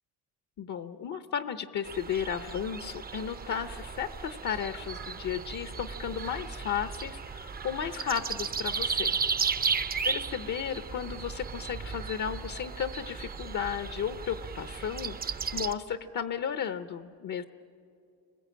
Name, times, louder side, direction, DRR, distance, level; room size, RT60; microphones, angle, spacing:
voice 1, 0.6-9.2 10.0-17.4, left 8 dB, 55° left, 10 dB, 0.8 m, -34 dB
sound 1, 1.8-15.7, right 5 dB, 25° right, 0.7 m, -35 dB
29.5 x 21.0 x 8.7 m, 2.5 s
cardioid pair, 130°, 35 cm